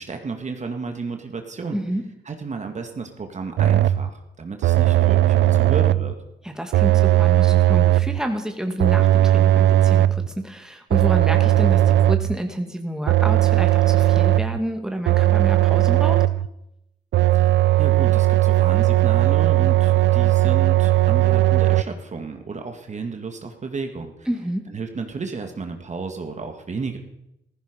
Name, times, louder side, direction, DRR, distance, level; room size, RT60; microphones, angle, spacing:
voice 1, 0.0-1.8 2.3-6.2 17.3-17.5 17.8-24.3 24.7-27.0, right 4 dB, 35° right, 5 dB, 2.0 m, -32 dB
voice 2, 1.7-2.0 6.4-16.2 24.3-24.6, right 1 dB, 5° right, 4 dB, 2.2 m, -29 dB
sound 1, 3.6-4.1 4.6-6.1 6.7-8.2 8.8-10.3 10.9-12.3 13.1-14.6 15.1-16.5 17.1-21.8, right 14 dB, 70° right, 0.5 m, -17 dB
15.0 x 15.0 x 5.2 m, 0.85 s
supercardioid pair, 70°, 19 cm